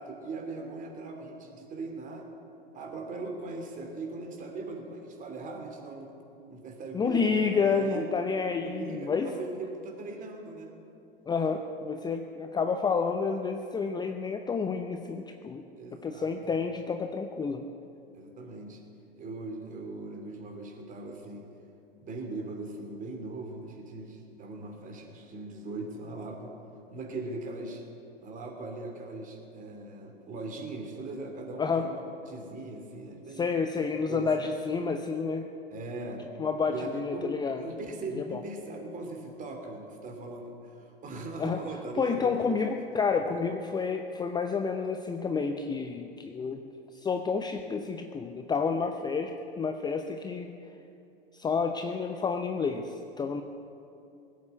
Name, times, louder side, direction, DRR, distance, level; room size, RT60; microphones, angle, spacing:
voice 1, 0.0-2.3 2.7-6.1 6.5-8.1 8.6-10.7 15.8-16.6 18.1-18.8 19.2-21.5 22.0-26.5 26.9-27.8 28.2-33.5 33.9-34.3 35.7-36.2 36.7-37.3 37.6-42.6 43.3-43.4, right 2 dB, 25° right, 3 dB, 3.1 m, -40 dB
voice 2, 6.9-9.3 11.3-15.6 16.0-17.7 31.6-31.9 33.3-35.5 36.4-37.6 38.2-38.4 41.4-41.6 41.9-50.5 51.3-53.4, left 5 dB, 15° left, 5 dB, 0.7 m, -30 dB
19.5 x 8.7 x 8.3 m, 2.7 s
figure-of-eight pair, 95°, 30 cm